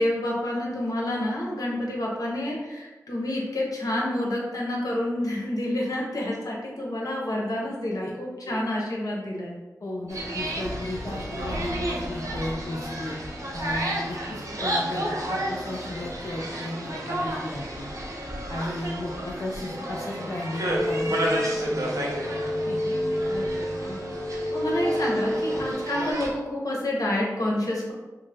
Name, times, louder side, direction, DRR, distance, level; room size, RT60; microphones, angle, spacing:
voice 1, 0.0-9.6 23.3-24.0 24.5-27.9, left 1 dB, 70° left, -3 dB, 0.8 m, -28 dB
voice 2, 9.8-13.2 13.5-17.9 18.5-22.9, left 1 dB, 55° left, -4 dB, 0.4 m, -35 dB
sound 1, 10.1-25.7, left 1 dB, 10° right, 1.2 m, -43 dB
sound 2, 10.1-26.3, right 1 dB, 60° right, 0.6 m, -32 dB
sound 3, 20.7-26.1, equal, 10° left, 0.8 m, -29 dB
3.1 x 2.0 x 3.4 m, 1.2 s
wide cardioid pair, 85°, 6 cm